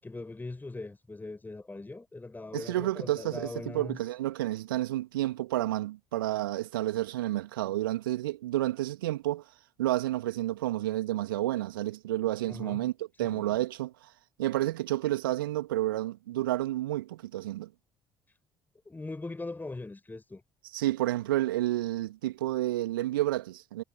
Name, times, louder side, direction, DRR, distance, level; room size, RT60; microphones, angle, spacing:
voice 1, 0.0-4.0 12.5-12.8 13.2-13.6 18.9-20.4, left 2 dB, 15° left, 7.3 m, -40 dB
voice 2, 2.5-9.4 9.8-12.9 13.2-13.9 14.4-17.7 20.7-23.8, right 15 dB, 75° right, 3.0 m, -30 dB
figure-of-eight pair, 50°, 12 cm